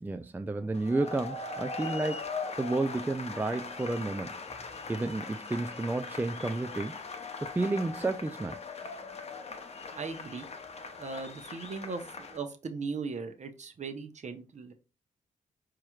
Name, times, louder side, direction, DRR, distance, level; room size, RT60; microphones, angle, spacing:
voice 1, 0.0-2.3 2.6-4.3 4.9-7.0 7.4-8.6, right 2 dB, 15° right, 0.3 m, -31 dB
sound 1, 0.7-12.4, left 4 dB, 45° left, 0.7 m, -40 dB
voice 2, 9.9-10.5 11.0-12.0 12.3-14.7, right 4 dB, 50° right, 0.8 m, -38 dB
4.7 x 3.0 x 2.3 m
cardioid pair, 60°, 15 cm